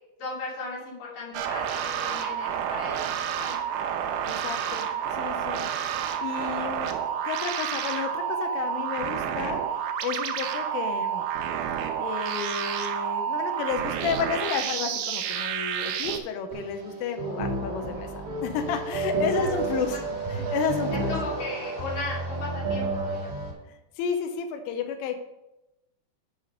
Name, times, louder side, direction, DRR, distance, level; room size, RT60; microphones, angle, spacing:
voice 1, 0.2-3.6 19.3-19.6 20.9-23.3, left 3 dB, 50° left, -6 dB, 4.2 m, -37 dB
sound 1, 1.3-16.2, right 8 dB, 85° right, 3.1 m, -30 dB
voice 2, 4.3-7.0 7.3-11.3 12.0-20.0 20.3-21.2 23.7-25.2, left 6 dB, 90° left, 6 dB, 3.4 m, -32 dB
sound 2, 16.5-23.5, right 3 dB, 50° right, 1.7 m, -31 dB
10.0 x 5.9 x 5.2 m, 0.94 s
omnidirectional pair, 5.5 m